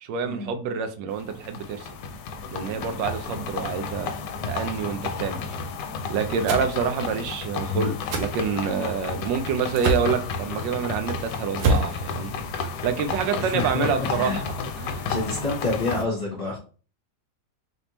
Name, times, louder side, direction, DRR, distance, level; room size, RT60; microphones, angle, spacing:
voice 1, 0.0-1.9 2.5-4.1 4.5-5.4 6.1-12.4 12.8-15.1, right 6 dB, 85° right, 1.3 m, -27 dB
sound 1, 1.1-16.0, left 5 dB, 75° left, 1.2 m, -32 dB
sound 2, 6.5-6.7 8.1-8.3 9.8-10.1 11.6-11.9, right 2 dB, 70° right, 1.2 m, -23 dB
voice 2, 13.4-14.4 15.0-16.6, left 3 dB, 35° left, 1.4 m, -28 dB
4.1 x 3.4 x 3.0 m
omnidirectional pair, 1.9 m